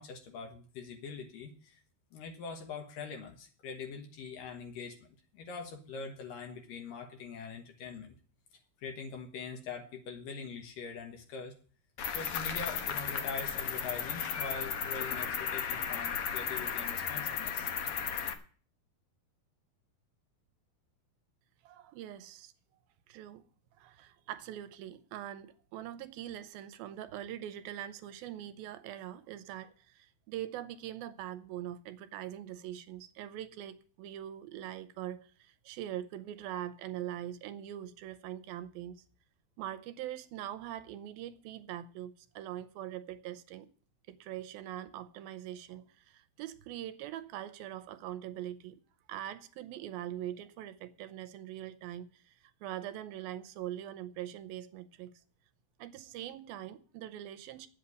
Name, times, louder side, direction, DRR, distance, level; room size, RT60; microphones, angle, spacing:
voice 1, 0.0-1.8 2.1-5.0 5.3-8.1 8.8-11.5 12.1-17.7, left 5 dB, 70° left, 2.9 m, -43 dB
Cricket, 12.0-18.3, left 7 dB, 90° left, 1.2 m, -35 dB
voice 2, 21.6-22.5 23.1-23.4 23.8-39.0 39.6-43.7 44.1-48.8 49.1-55.1 55.8-57.7, right 12 dB, 90° right, 2.6 m, -42 dB
9.7 x 8.1 x 8.3 m
omnidirectional pair, 4.2 m